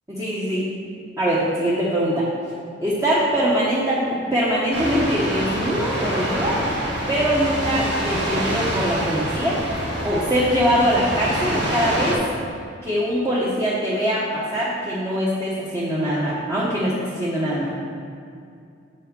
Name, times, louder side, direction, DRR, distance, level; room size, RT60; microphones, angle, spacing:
voice 1, 0.1-0.7 1.2-2.2 2.8-6.6 7.1-9.6 10.0-12.2 12.8-17.7, equal, 15° right, -7 dB, 1.1 m, -22 dB
sound 1, 4.7-12.1, right 1 dB, 65° right, 2.0 m, -26 dB
7.3 x 5.5 x 5.3 m, 2.4 s
head